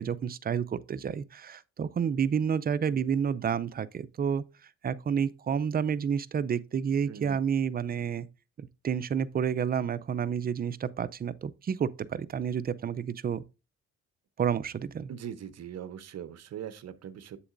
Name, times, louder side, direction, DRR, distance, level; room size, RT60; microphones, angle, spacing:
voice 1, 0.0-4.4 4.8-8.3 8.6-13.4 14.4-15.1, right 7 dB, 30° right, 0.5 m, -30 dB
voice 2, 7.1-7.4 15.1-17.4, right 9 dB, 60° right, 0.8 m, -41 dB
8.0 x 6.9 x 2.5 m
cardioid pair, 90°, 30 cm